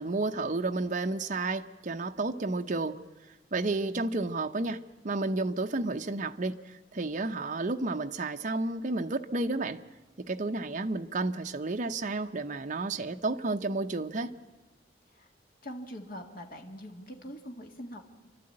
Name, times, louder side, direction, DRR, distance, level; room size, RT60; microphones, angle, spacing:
voice 1, 0.0-3.0 3.5-9.8 10.2-14.3, right 2 dB, 45° right, 0.7 m, -31 dB
voice 2, 15.6-18.0, equal, 55° left, 2.2 m, -43 dB
28.5 x 12.0 x 8.7 m
head